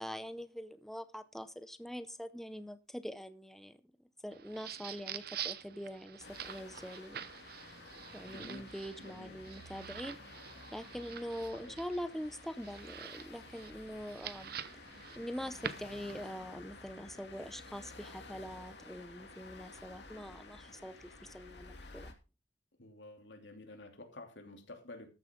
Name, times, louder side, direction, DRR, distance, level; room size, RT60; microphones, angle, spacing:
voice 1, 0.0-3.8 4.2-7.2 8.1-10.2 10.7-14.6 15.2-22.1, equal, ahead, 12 dB, 0.6 m, -44 dB
sound 1, 4.3-16.3, right 8 dB, 60° right, 0.8 m, -47 dB
sound 2, 6.2-22.1, left 3 dB, 65° left, 2.6 m, -53 dB
voice 2, 8.3-9.5 11.5-11.8 22.8-25.1, left 2 dB, 85° left, 4 dB, 3.0 m, -51 dB
14.0 x 10.0 x 3.7 m, 0.29 s
head